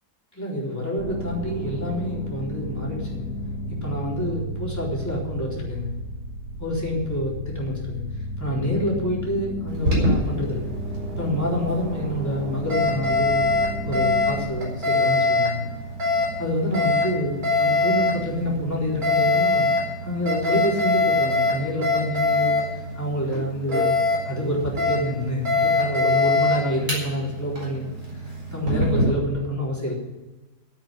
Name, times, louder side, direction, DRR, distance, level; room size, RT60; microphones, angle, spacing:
voice 1, 0.3-3.3 3.8-5.9 6.6-8.0 8.4-10.7 11.2-13.4 13.9-15.6 16.4-19.7 20.0-24.0 24.2-27.9 28.1-29.9, equal, 10° left, -4 dB, 4.1 m, -27 dB
sound 1, 1.0-14.5, equal, 80° right, 3.5 m, -33 dB
Alarm, 9.7-29.1, left 2 dB, 60° right, 5.1 m, -24 dB
10.0 x 8.9 x 9.9 m, 1.1 s
omnidirectional pair, 1.7 m